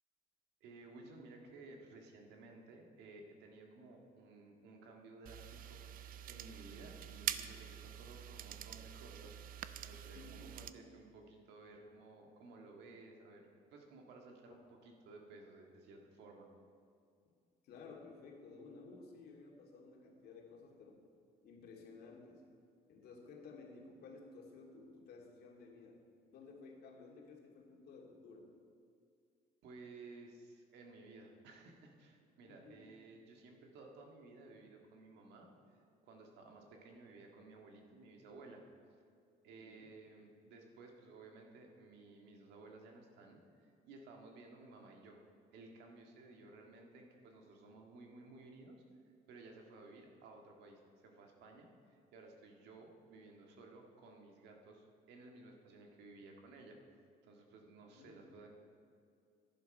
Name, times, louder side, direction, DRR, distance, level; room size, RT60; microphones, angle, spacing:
voice 1, 0.6-16.5 29.6-38.6 39.4-45.2 45.5-56.8 57.2-58.5, right 3 dB, 85° right, 2 dB, 1.8 m, -56 dB
sound 1, 5.3-10.7, right 10 dB, 55° right, 0.5 m, -46 dB
voice 2, 10.1-10.7 14.5-14.6 14.8-14.9 17.2-17.3 17.6-21.0 21.4-22.4 22.9-26.0 26.3-28.5 32.5-33.0 39.5-39.9 57.9-58.4, left 4 dB, 70° left, 0 dB, 2.4 m, -55 dB
11.0 x 11.0 x 5.4 m, 2.3 s
cardioid pair, 110°, 17 cm